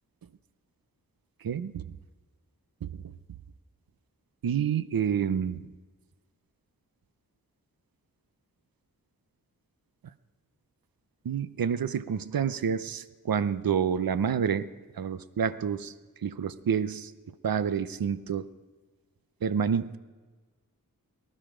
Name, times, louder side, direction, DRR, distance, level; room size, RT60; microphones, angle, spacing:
voice 1, 1.4-1.8 2.8-3.0 4.4-5.7 11.2-14.7 15.0-15.9 16.2-17.1 17.4-18.5 19.4-20.0, right 7 dB, 70° right, 14 dB, 0.7 m, -28 dB
19.0 x 12.5 x 5.0 m, 1.3 s
cardioid pair, 40°, 36 cm